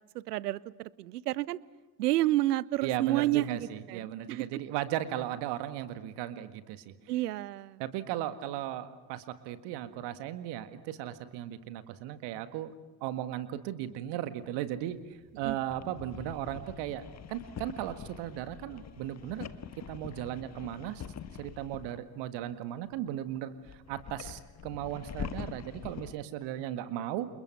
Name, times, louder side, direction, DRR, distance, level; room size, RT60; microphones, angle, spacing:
voice 1, 0.1-1.6 2.0-4.4 7.1-7.8 15.4-15.6, right 16 dB, 70° right, 23 dB, 0.8 m, -30 dB
voice 2, 2.8-6.9 7.8-12.7 13.0-19.5 19.9-21.0 21.4-27.3, right 12 dB, 55° right, 11 dB, 1.9 m, -36 dB
sound 1, 14.8-22.1 22.9-23.0 23.6-26.2, left 8 dB, 30° left, 1.5 m, -44 dB
30.0 x 28.5 x 5.8 m, 1.2 s
figure-of-eight pair, 55°, 49 cm